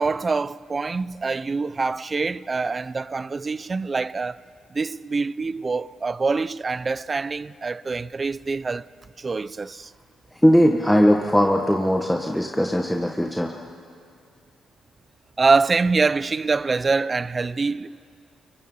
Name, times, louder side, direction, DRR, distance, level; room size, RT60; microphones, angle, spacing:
voice 1, 0.0-4.4 4.7-8.8 9.2-9.9 15.4-17.9, right 4 dB, 30° right, 0.5 m, -24 dB
voice 2, 10.4-13.5, equal, 5° left, 1.4 m, -19 dB
29.5 x 24.0 x 5.6 m
cardioid pair, 90°, 0 cm